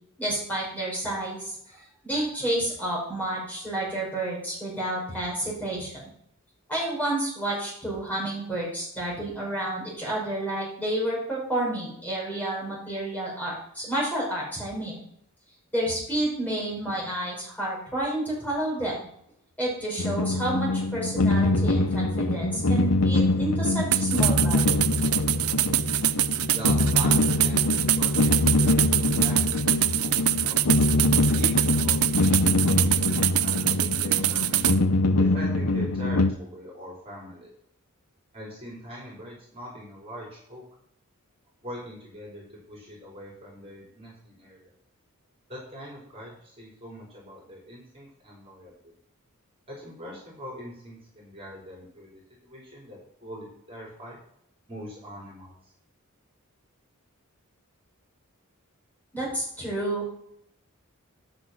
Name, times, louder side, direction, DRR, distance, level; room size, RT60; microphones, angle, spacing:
voice 1, 0.2-6.0 6.7-15.0 15.7-18.9 19.6-24.8 59.1-60.1, right 1 dB, 10° left, -5 dB, 5.8 m, -30 dB
sound 1, 20.0-36.3, left 2 dB, 80° left, 0.8 m, -24 dB
sound 2, 23.9-34.8, right 14 dB, 80° right, 0.5 m, -24 dB
voice 2, 26.5-30.6 31.4-32.5 32.8-34.8 35.2-37.5 38.3-40.6 41.6-44.7 45.5-48.7 49.7-54.2 54.7-55.5, equal, 25° right, -5 dB, 4.5 m, -42 dB
12.0 x 6.7 x 6.0 m, 0.70 s
head